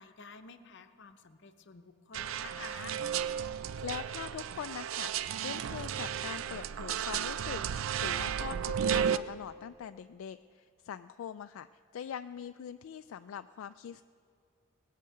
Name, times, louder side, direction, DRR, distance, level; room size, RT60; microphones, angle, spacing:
voice 1, 0.0-3.0, left 5 dB, 60° left, 9 dB, 0.8 m, -50 dB
sound 1, 2.1-9.2, right 8 dB, 80° right, 0.4 m, -33 dB
voice 2, 3.8-14.0, left 8 dB, 80° left, 10 dB, 0.3 m, -43 dB
19.5 x 6.6 x 8.6 m, 2.3 s
head